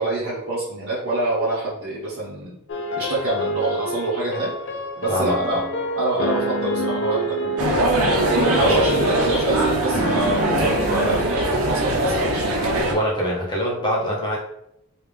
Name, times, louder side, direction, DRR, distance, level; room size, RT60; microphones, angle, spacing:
voice 1, 0.0-2.5 2.9-4.5 4.9-5.6 5.9-7.6 8.3-12.5, right 2 dB, 50° right, -10 dB, 1.0 m, -26 dB
sound 1, 2.7-11.3, right 1 dB, 55° left, 0.5 m, -27 dB
voice 2, 5.1-5.7 8.6-8.9 12.9-14.4, equal, 20° left, -4 dB, 0.8 m, -24 dB
sound 2, 7.6-12.9, right 1 dB, 80° right, 0.7 m, -22 dB
3.3 x 2.4 x 3.4 m, 0.79 s
head